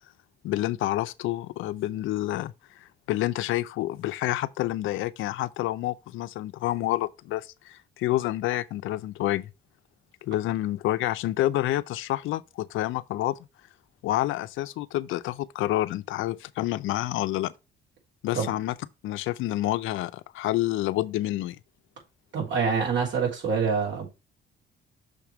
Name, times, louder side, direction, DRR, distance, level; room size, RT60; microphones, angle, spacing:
voice 1, 0.4-9.5 10.2-13.4 14.0-17.5 18.2-18.7 19.0-21.6, left 15 dB, 85° left, 0.5 m, -28 dB
voice 2, 22.3-24.1, right 5 dB, 70° right, 3.4 m, -26 dB
6.5 x 3.4 x 5.9 m
cardioid pair, 90°, 20 cm